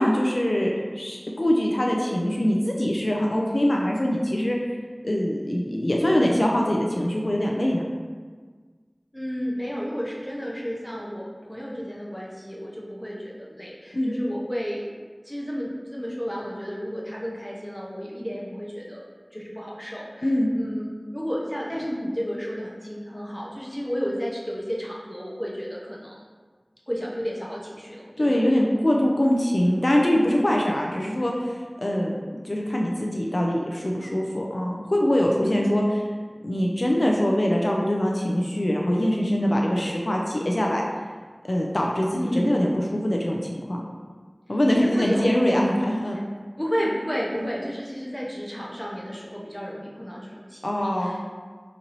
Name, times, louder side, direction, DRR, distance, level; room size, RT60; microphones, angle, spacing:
voice 1, 0.0-4.6 5.0-7.9 13.9-14.1 20.2-20.5 28.2-32.2 32.4-35.8 36.4-40.8 41.5-43.8 44.5-46.2 47.4-47.5 50.6-51.2, equal, 60° left, -1 dB, 0.4 m, -23 dB
voice 2, 9.1-14.9 15.2-26.2 26.9-28.6 35.4-35.7 42.1-42.7 44.7-45.3 46.6-51.3, equal, 10° left, -4 dB, 0.7 m, -32 dB
4.0 x 2.6 x 2.9 m, 1.5 s
wide cardioid pair, 45°, 0 cm